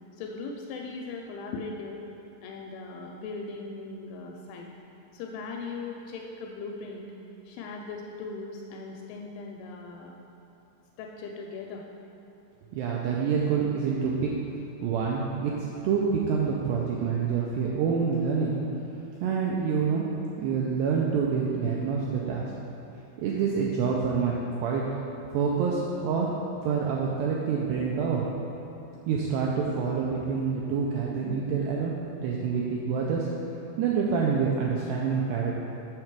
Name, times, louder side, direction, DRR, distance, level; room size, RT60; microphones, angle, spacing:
voice 1, 0.2-2.0 2.4-4.7 5.1-7.1 7.5-10.1 11.0-11.8, left 4 dB, 85° left, 1 dB, 3.0 m, -39 dB
voice 2, 12.7-14.3 14.8-18.5 19.2-20.1 20.4-22.4 23.2-24.9 25.3-26.3 26.6-28.3 29.1-31.9 32.2-33.3 33.8-35.5, right 6 dB, 85° right, -3 dB, 2.4 m, -27 dB
7.3 x 6.6 x 4.6 m, 3.0 s
omnidirectional pair, 5.3 m